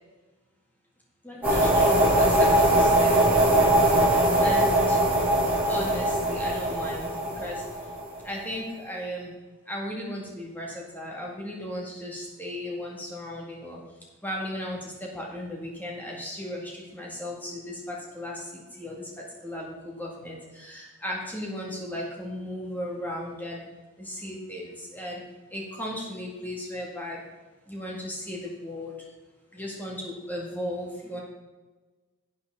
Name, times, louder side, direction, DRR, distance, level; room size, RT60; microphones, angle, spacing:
voice 1, 1.2-3.2 4.4-5.0 5.6-7.6 8.2-9.3 9.7-13.8 14.2-23.7 24.0-25.2 25.5-27.2 27.7-28.9 29.5-31.2, left 1 dB, 10° left, -3 dB, 2.2 m, -36 dB
sound 1, 1.4-8.3, right 1 dB, 5° right, 3.8 m, -21 dB
12.0 x 8.0 x 4.0 m, 1.2 s
head